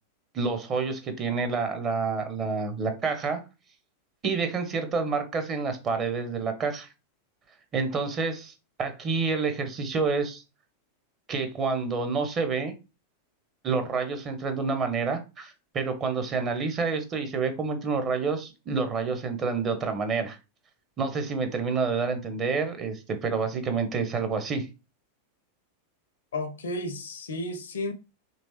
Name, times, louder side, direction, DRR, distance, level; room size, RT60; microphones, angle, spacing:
voice 1, 0.3-3.4 4.2-6.9 7.7-8.5 8.8-10.4 11.3-12.7 13.6-20.4 21.0-24.7, right 4 dB, 30° right, 0.8 m, -28 dB
voice 2, 26.3-27.9, left 1 dB, 65° left, 0.5 m, -32 dB
3.1 x 2.7 x 3.1 m
figure-of-eight pair, 90°, 0 cm